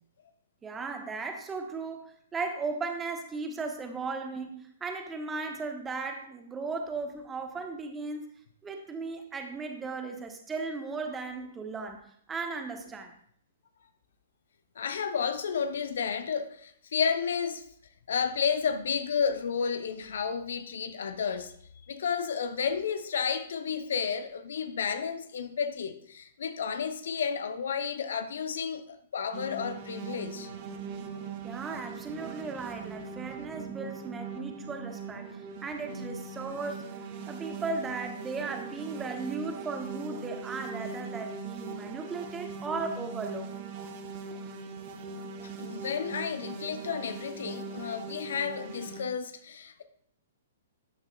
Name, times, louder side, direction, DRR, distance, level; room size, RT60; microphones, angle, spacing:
voice 1, 0.6-8.3 8.6-13.1 31.4-37.0 37.3-43.5, right 4 dB, 15° right, 1.2 m, -36 dB
voice 2, 14.8-17.6 18.1-21.5 21.9-30.5 45.4-49.8, left 6 dB, 65° left, 0.7 m, -32 dB
sound 1, 29.3-49.0, right 4 dB, 45° right, 1.1 m, -40 dB
12.5 x 8.7 x 2.3 m
figure-of-eight pair, 120°, 0 cm